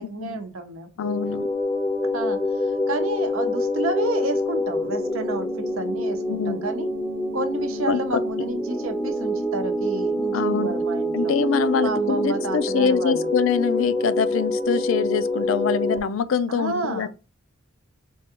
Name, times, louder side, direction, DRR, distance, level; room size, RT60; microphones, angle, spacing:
voice 1, 0.0-0.9 2.1-5.5 5.8-6.9 7.3-11.3 11.8-13.3 16.5-17.1, right 2 dB, 85° right, 0.7 m, -30 dB
voice 2, 1.0-1.5 6.3-6.7 7.9-8.3 10.3-10.7 11.1-17.1, left 6 dB, 70° left, 0.4 m, -24 dB
sound 1, 1.0-16.0, left 1 dB, 10° left, 0.5 m, -26 dB
4.5 x 2.3 x 2.9 m
head